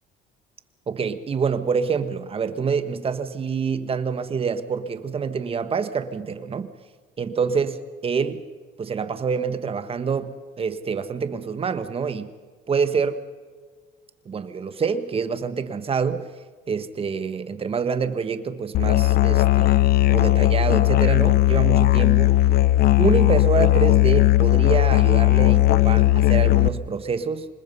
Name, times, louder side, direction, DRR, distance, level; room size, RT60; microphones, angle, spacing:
voice 1, 0.9-6.7 7.2-8.4 8.8-12.3 12.7-13.2 14.2-16.3 16.7-22.4 23.0-27.5, right 6 dB, 35° right, 10 dB, 1.5 m, -26 dB
Musical instrument, 18.7-26.7, left 15 dB, 65° left, 0.7 m, -17 dB
26.5 x 20.5 x 5.6 m, 1.5 s
cardioid pair, 110°, 17 cm